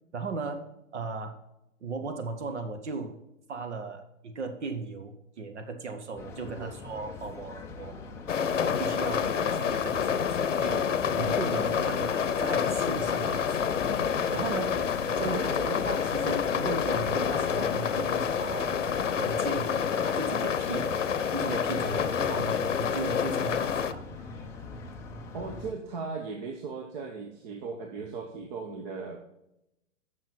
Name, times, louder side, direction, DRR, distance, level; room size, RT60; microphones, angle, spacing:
voice 1, 0.1-0.6 0.9-1.3 1.8-3.2 3.5-8.0 8.5-13.7 14.3-21.0 21.3-24.0, right 4 dB, 65° right, 6 dB, 1.2 m, -37 dB
sound 1, 6.2-25.7, left 3 dB, 10° left, 0.4 m, -42 dB
sound 2, 8.3-23.9, left 7 dB, 70° left, 0.7 m, -28 dB
voice 2, 15.1-15.8 25.3-29.2, right 4 dB, 35° right, 3 dB, 1.0 m, -37 dB
8.9 x 6.4 x 4.3 m, 0.85 s
figure-of-eight pair, 110°, 38 cm